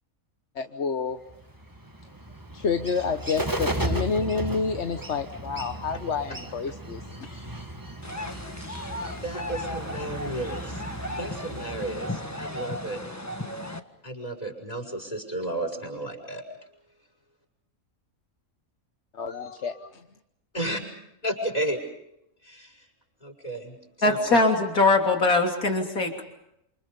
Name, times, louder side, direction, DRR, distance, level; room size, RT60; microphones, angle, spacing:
voice 1, 0.5-1.2 2.5-7.6 9.0-9.2 19.1-20.0, left 5 dB, 55° left, 7 dB, 1.4 m, -29 dB
Bird, 1.3-12.8, right 1 dB, 15° right, 1.5 m, -35 dB
sound 1, 8.0-13.8, left 1 dB, 10° left, 1.6 m, -36 dB
voice 2, 9.2-10.8 11.2-13.0 14.0-16.4 20.5-20.8 21.2-21.8 22.4-22.8 23.2-24.4, right 1 dB, 25° left, 3 dB, 6.5 m, -33 dB
voice 3, 24.0-26.2, left 2 dB, 80° left, 3 dB, 3.6 m, -21 dB
29.5 x 28.5 x 5.4 m, 0.81 s
omnidirectional pair, 1.5 m